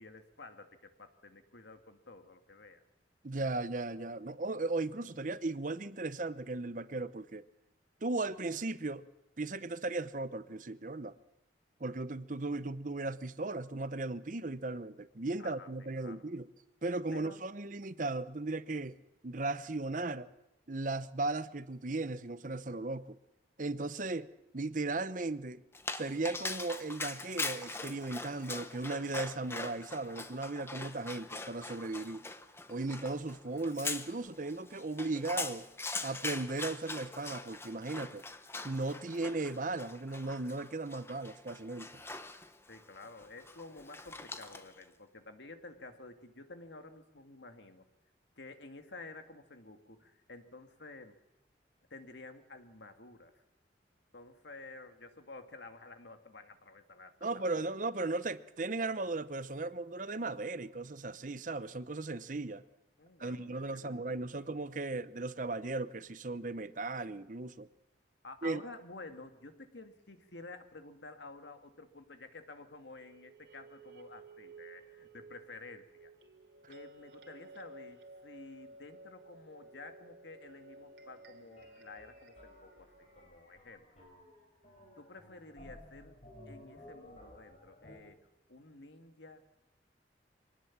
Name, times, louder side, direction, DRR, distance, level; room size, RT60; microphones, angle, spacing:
voice 1, 0.0-2.8 15.4-15.7 16.0-16.2 17.1-17.4 42.7-47.8 48.4-51.2 51.9-53.4 54.1-57.8 63.0-63.5 63.7-64.4 68.2-76.1 76.7-83.9 85.0-89.4, left 3 dB, 75° left, 7 dB, 2.2 m, -51 dB
voice 2, 3.2-7.4 8.0-9.1 9.4-11.1 11.8-16.5 16.8-18.9 19.2-20.3 20.7-23.2 23.6-24.3 24.5-25.6 26.0-32.3 32.7-35.7 36.0-38.2 38.6-41.9 57.2-62.6 63.2-67.7 68.4-68.6, right 2 dB, 45° right, 14 dB, 0.8 m, -36 dB
Dog, 25.7-44.8, left 3 dB, 15° left, 1.0 m, -42 dB
sound 1, 72.9-83.3, right 2 dB, 90° right, 3.2 m, -55 dB
sound 2, 81.6-88.0, left 1 dB, 35° left, 6.4 m, -56 dB
24.0 x 18.5 x 7.4 m, 0.93 s
head